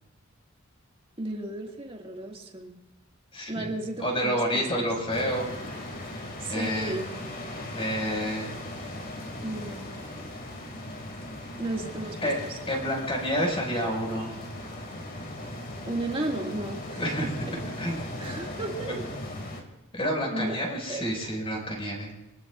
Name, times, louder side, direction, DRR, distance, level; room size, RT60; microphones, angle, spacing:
voice 1, 1.2-2.8 3.5-4.9 6.4-7.1 9.4-9.9 11.6-12.5 15.9-17.3 18.0-19.0 20.3-21.0, right 2 dB, 25° right, 0 dB, 2.0 m, -34 dB
voice 2, 3.3-3.7 4.0-5.5 6.5-6.9 7.7-8.5 12.2-12.4 12.7-14.4 16.9-17.3 17.8-18.0 18.9-19.0 19.9-22.1, equal, 25° left, -1 dB, 5.3 m, -29 dB
sound 1, 5.1-19.6, left 1 dB, 45° left, 2.3 m, -38 dB
24.5 x 19.5 x 2.4 m, 0.97 s
head